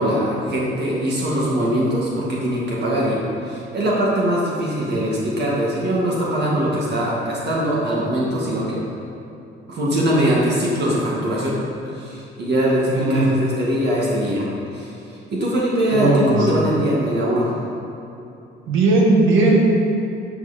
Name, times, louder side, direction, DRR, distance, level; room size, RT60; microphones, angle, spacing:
voice 1, 0.0-8.8 9.7-11.6 11.9-14.9 15.3-17.5, equal, 55° right, -5 dB, 2.2 m, -21 dB
voice 2, 12.9-13.3 15.9-16.7 18.7-19.6, right 2 dB, 90° right, -2 dB, 1.7 m, -17 dB
12.0 x 6.0 x 4.3 m, 2.8 s
cardioid pair, 90°, 20 cm